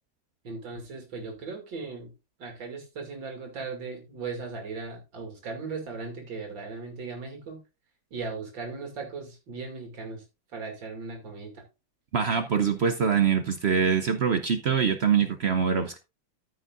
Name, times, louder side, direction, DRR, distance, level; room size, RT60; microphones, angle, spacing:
voice 1, 0.4-2.1 2.4-7.6 8.1-10.2 10.5-11.6, right 4 dB, 85° right, 2 dB, 3.1 m, -37 dB
voice 2, 12.1-16.0, right 6 dB, 70° right, 8 dB, 0.6 m, -24 dB
14.0 x 6.4 x 2.5 m, 0.28 s
omnidirectional pair, 2.0 m